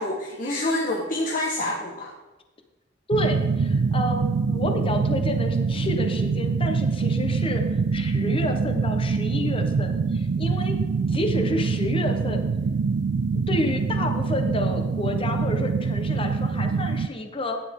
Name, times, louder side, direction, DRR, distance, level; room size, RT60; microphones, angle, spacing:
voice 1, 0.0-2.1, left 1 dB, 45° left, -2 dB, 1.4 m, -27 dB
voice 2, 3.1-10.8 11.1-12.4 13.5-17.6, left 1 dB, 30° left, 5 dB, 1.1 m, -29 dB
sound 1, 3.1-17.1, right 4 dB, 65° right, 0.4 m, -24 dB
13.0 x 9.9 x 3.7 m, 1.2 s
head